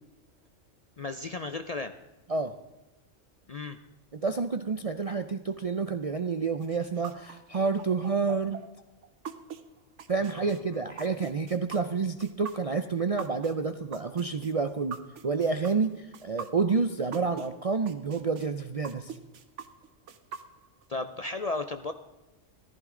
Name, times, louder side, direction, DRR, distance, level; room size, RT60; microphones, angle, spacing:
voice 1, 1.0-1.9 3.5-3.8 10.2-10.8 20.9-21.9, left 3 dB, 45° left, 8 dB, 0.5 m, -35 dB
voice 2, 4.1-8.6 10.1-15.0 15.2-19.1, right 4 dB, 45° right, 9 dB, 0.4 m, -29 dB
sound 1, 6.6-17.5 17.9-20.8, right 7 dB, 70° right, 1.2 m, -42 dB
14.5 x 14.0 x 3.8 m, 1.1 s
omnidirectional pair, 1.3 m